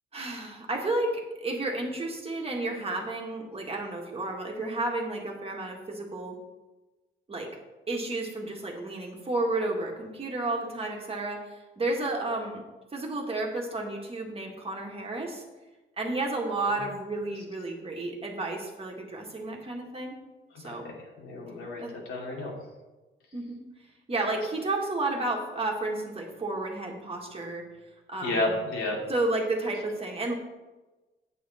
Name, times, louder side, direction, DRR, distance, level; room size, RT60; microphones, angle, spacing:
voice 1, 0.1-6.4 7.3-7.5 7.9-12.6 12.9-15.4 16.0-20.2 20.6-20.9 21.8-21.9 23.3-23.6 24.1-27.7 28.1-28.6 29.1-30.3, right 2 dB, 25° right, 0 dB, 1.9 m, -32 dB
voice 2, 20.6-21.8 22.1-22.5 28.2-29.0, left 2 dB, 80° left, -2 dB, 2.7 m, -31 dB
8.7 x 8.5 x 4.3 m, 1.2 s
cardioid pair, 115°, 21 cm